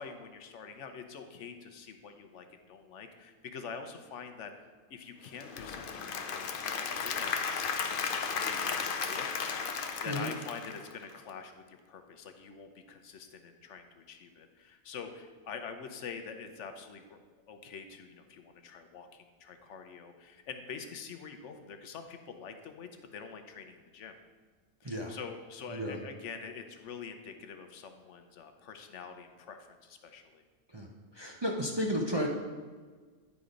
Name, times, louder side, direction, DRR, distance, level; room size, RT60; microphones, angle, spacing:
voice 1, 0.0-4.5 4.9-7.5 7.8-9.6 9.9-17.2 17.5-24.2 24.8-30.4, left 6 dB, 70° left, 7 dB, 1.0 m, -46 dB
Applause / Crowd, 5.2-11.3, left 6 dB, 55° left, 0.7 m, -34 dB
voice 2, 31.1-32.3, equal, 30° right, 0 dB, 0.5 m, -32 dB
9.7 x 4.1 x 5.1 m, 1.5 s
omnidirectional pair, 1.3 m